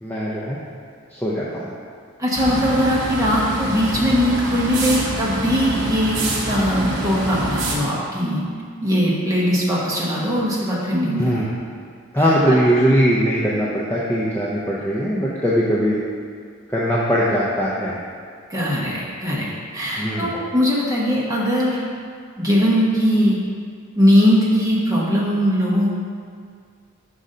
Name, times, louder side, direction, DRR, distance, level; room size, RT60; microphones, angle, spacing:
voice 1, 0.0-0.6 1.1-1.7 11.2-11.5 12.1-16.0 16.7-18.0 20.0-20.3, equal, 10° left, -7 dB, 0.4 m, -20 dB
voice 2, 2.2-8.4 8.8-11.5 12.2-12.6 18.5-21.8 22.4-23.4 24.0-25.9, equal, 15° right, -5 dB, 0.9 m, -20 dB
sound 1, 2.3-7.8, right 1 dB, 60° right, 0.9 m, -26 dB
5.2 x 3.8 x 5.4 m, 2.2 s
head